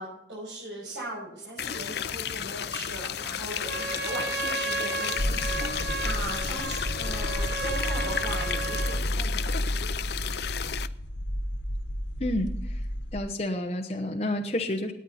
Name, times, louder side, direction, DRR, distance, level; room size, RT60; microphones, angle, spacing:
voice 1, 0.0-9.5, right 1 dB, 80° right, -6 dB, 6.6 m, -38 dB
sound 1, 1.6-10.9, left 8 dB, 60° left, 0.5 m, -33 dB
Trumpet, 3.6-9.1, right 4 dB, 60° right, 1.1 m, -34 dB
sound 2, 5.2-13.2, equal, 90° left, 1.3 m, -31 dB
voice 2, 12.2-12.8 13.1-14.9, left 1 dB, 35° left, 2 dB, 0.9 m, -30 dB
18.0 x 9.7 x 4.2 m, 0.79 s
head